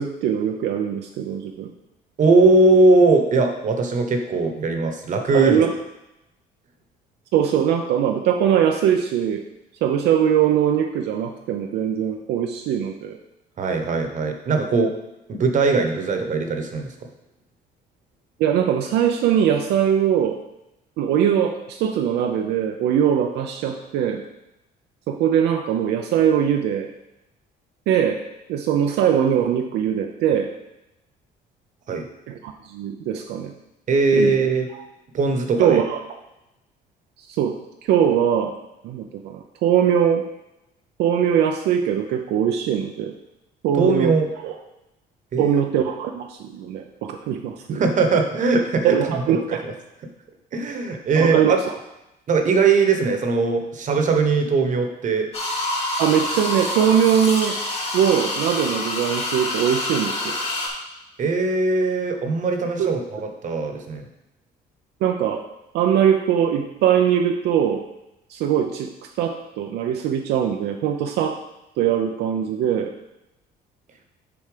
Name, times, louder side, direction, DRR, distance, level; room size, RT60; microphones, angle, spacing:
voice 1, 0.0-1.7 5.3-5.7 7.3-9.4 9.8-13.2 18.4-20.4 21.0-24.2 25.1-26.9 27.9-28.2 28.5-30.5 32.3-33.5 34.1-34.3 34.7-34.8 35.6-36.0 37.2-38.6 38.8-40.2 41.0-43.1 43.6-44.1 44.4-44.5 45.4-47.8 48.8-49.6 51.2-51.6 56.0-57.6 57.9-60.4 62.8-62.9 65.0-65.4 65.7-67.8 68.3-71.4 71.8-72.9, right 9 dB, 80° right, 3 dB, 0.6 m, -21 dB
voice 2, 2.2-5.6 13.6-14.9 15.3-16.9 31.9-32.1 33.9-34.7 35.1-35.8 43.8-44.3 45.3-45.6 47.7-49.0 49.3-49.4 49.6-49.7 50.5-51.6 52.3-55.3 61.2-64.1, right 3 dB, 50° right, 5 dB, 1.1 m, -20 dB
sound 1, 55.3-60.7, left 2 dB, 35° left, 2.2 m, -27 dB
7.1 x 4.3 x 5.0 m, 0.90 s
cardioid pair, 110°, 17 cm